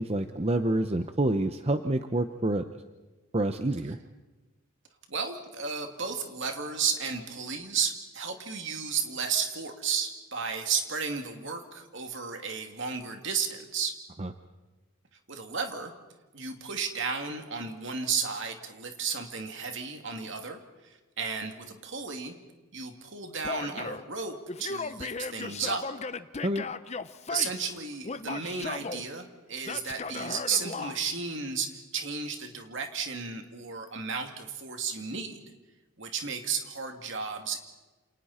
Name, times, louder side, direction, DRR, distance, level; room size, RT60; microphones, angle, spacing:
voice 1, 0.0-2.7 3.3-4.0 14.2-14.3 26.4-26.6, right 1 dB, 30° right, 8 dB, 0.7 m, -27 dB
voice 2, 5.1-14.0 15.3-15.9 16.3-22.4 22.7-25.9 27.3-35.4 36.0-37.6, right 6 dB, 55° right, 4 dB, 2.6 m, -33 dB
Male speech man speaking / Yell, 23.4-24.1 24.5-27.8 28.0-29.0 29.6-31.0, left 4 dB, 30° left, 0.7 m, -36 dB
28.5 x 28.5 x 4.3 m, 1.2 s
head